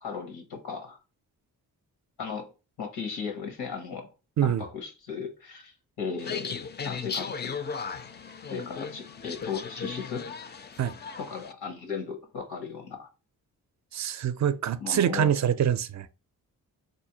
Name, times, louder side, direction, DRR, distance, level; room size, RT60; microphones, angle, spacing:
voice 1, 0.0-1.0 2.2-2.5 2.8-4.1 4.4-7.6 8.5-10.6 11.2-13.1 14.8-15.3, left 6 dB, 85° left, 1.1 m, -36 dB
sound 1, 6.2-11.5, left 5 dB, 30° left, 0.4 m, -37 dB
voice 2, 13.9-16.1, right 9 dB, 50° right, 0.4 m, -25 dB
4.1 x 2.6 x 2.8 m
cardioid pair, 70°, 37 cm